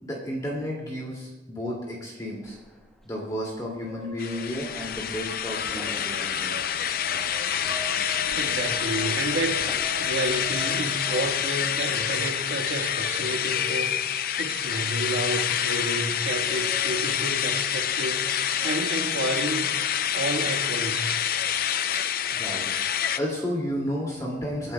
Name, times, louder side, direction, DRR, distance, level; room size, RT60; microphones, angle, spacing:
voice 1, 0.0-2.6 3.0-6.6 21.6-22.0 22.3-22.7 23.1-24.7, equal, 20° left, -4 dB, 2.4 m, -32 dB
sound 1, 2.4-11.1, equal, ahead, 1.1 m, -49 dB
sound 2, 3.8-4.5 5.8-7.3 7.6-14.0 14.6-16.1 16.4-16.9 17.5-17.6 17.9-18.7, left 1 dB, 55° right, 2.7 m, -42 dB
sound 3, 4.2-23.2, left 9 dB, 50° left, 0.5 m, -27 dB
voice 2, 8.3-9.6 10.0-19.7 20.1-21.2, right 1 dB, 80° right, 2 dB, 1.5 m, -31 dB
27.0 x 11.0 x 2.3 m, 1.2 s
head